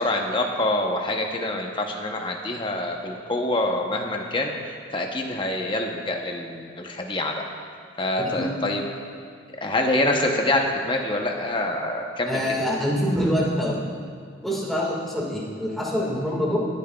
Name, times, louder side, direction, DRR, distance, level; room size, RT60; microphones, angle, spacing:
voice 1, 0.0-7.4 8.0-8.9 9.6-12.4, left 1 dB, 25° left, 2 dB, 0.7 m, -26 dB
voice 2, 12.3-13.8 14.4-16.7, equal, ahead, -5 dB, 1.7 m, -25 dB
21.0 x 8.7 x 2.3 m, 2.1 s
head